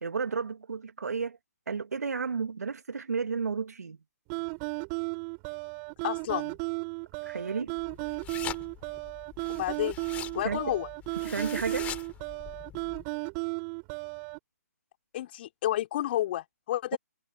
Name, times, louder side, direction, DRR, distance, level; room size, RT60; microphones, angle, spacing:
voice 1, 0.0-1.4 1.7-4.0 7.2-7.8 10.4-10.6 11.2-11.9, right 5 dB, 70° right, 3.0 m, -32 dB
sound 1, 4.3-14.4, right 34 dB, 25° right, 4.3 m, -35 dB
voice 2, 6.0-6.6 9.5-10.0 10.3-10.9 15.1-17.0, left 13 dB, 40° left, 5.8 m, -30 dB
sound 2, 7.8-13.0, left 12 dB, 15° left, 5.7 m, -43 dB
figure-of-eight pair, 145°, 9 cm